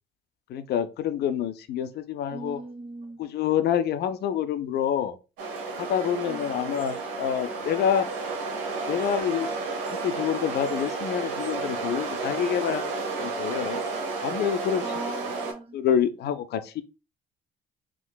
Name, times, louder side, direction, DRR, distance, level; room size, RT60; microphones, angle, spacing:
voice 1, 0.5-2.6 3.2-5.1 5.8-8.1 8.9-9.5 10.0-12.9 13.2-13.8 14.2-14.8 15.7-16.8, left 9 dB, 55° left, 0.5 m, -27 dB
voice 2, 2.3-3.3 6.3-6.7 14.8-15.8, right 2 dB, 30° right, 0.9 m, -39 dB
sound 1, 5.4-15.5, right 3 dB, 70° right, 0.8 m, -32 dB
3.6 x 2.4 x 2.2 m
hypercardioid pair, 55°, 21 cm